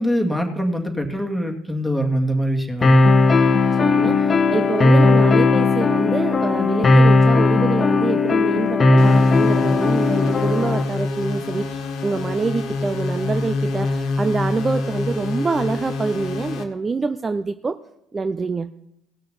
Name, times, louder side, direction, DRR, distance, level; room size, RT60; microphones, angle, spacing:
voice 1, 0.0-3.1, equal, ahead, 2 dB, 2.1 m, -23 dB
sound 1, 2.8-10.8, left 3 dB, 30° left, 1.0 m, -16 dB
voice 2, 3.8-17.8 18.1-18.7, right 4 dB, 30° right, 11 dB, 0.5 m, -26 dB
sound 2, 9.0-16.6, left 3 dB, 60° left, 1.5 m, -26 dB
16.5 x 6.5 x 5.6 m, 0.82 s
hypercardioid pair, 60°, 0 cm